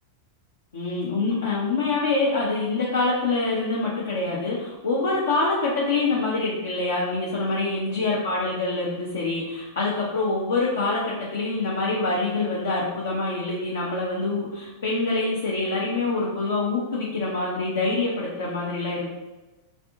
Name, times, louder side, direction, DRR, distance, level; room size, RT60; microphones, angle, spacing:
voice 1, 0.7-19.1, left 3 dB, 65° left, -5 dB, 0.6 m, -25 dB
3.5 x 2.5 x 3.6 m, 1.1 s
figure-of-eight pair, 90°, 0 cm